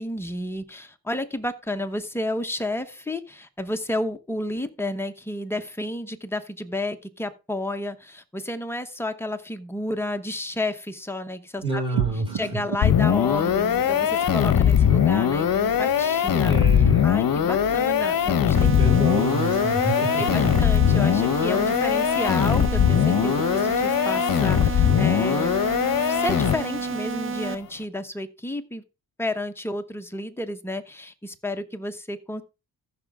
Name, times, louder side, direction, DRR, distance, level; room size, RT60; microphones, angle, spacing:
voice 1, 0.0-11.8 12.3-16.5 17.0-19.0 19.8-19.9 20.2-25.6 26.0-28.8 29.2-32.4, left 1 dB, 5° left, 7 dB, 1.0 m, -31 dB
voice 2, 11.6-12.5 14.2-14.4 16.5-17.1 18.6-20.5, right 2 dB, 15° right, 0 dB, 5.2 m, -29 dB
sound 1, 12.0-22.6, right 7 dB, 80° right, 0.9 m, -38 dB
sound 2, 12.8-26.9, left 9 dB, 55° left, 0.9 m, -21 dB
sound 3, 18.6-27.6, right 5 dB, 30° right, 0.7 m, -30 dB
14.5 x 6.0 x 3.6 m, 0.29 s
cardioid pair, 115°, 40 cm